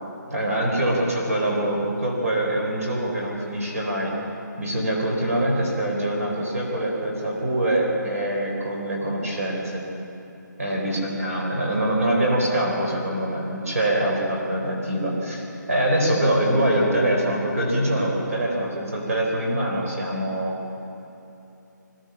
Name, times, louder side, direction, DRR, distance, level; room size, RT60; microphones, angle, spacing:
voice 1, 0.3-4.1 4.6-9.8 10.6-20.5, right 1 dB, 50° right, -1 dB, 4.2 m, -24 dB
22.5 x 16.5 x 7.2 m, 2.9 s
hypercardioid pair, 180°, 10 cm